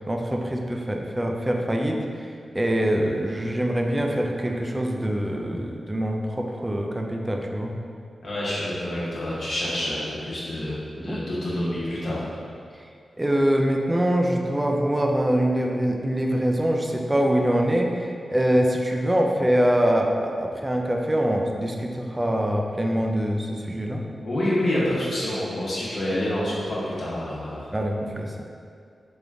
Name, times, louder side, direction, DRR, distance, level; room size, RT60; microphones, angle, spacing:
voice 1, 0.0-7.7 11.0-11.2 13.2-24.0 27.7-28.3, equal, 20° right, 1 dB, 0.4 m, -24 dB
voice 2, 8.2-12.3 24.2-27.7, left 1 dB, 65° left, -8 dB, 1.1 m, -27 dB
3.6 x 2.5 x 3.4 m, 2.3 s
cardioid pair, 45°, 0 cm